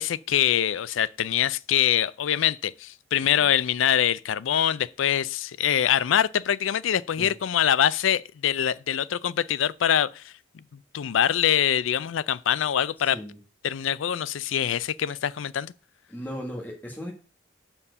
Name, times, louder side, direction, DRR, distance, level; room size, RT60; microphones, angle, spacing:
voice 1, 0.0-10.3 10.9-13.2 13.6-15.7, left 10 dB, 85° left, 0.4 m, -24 dB
voice 2, 13.0-13.4 16.1-17.1, equal, 10° left, 1.4 m, -36 dB
7.2 x 4.4 x 6.6 m
head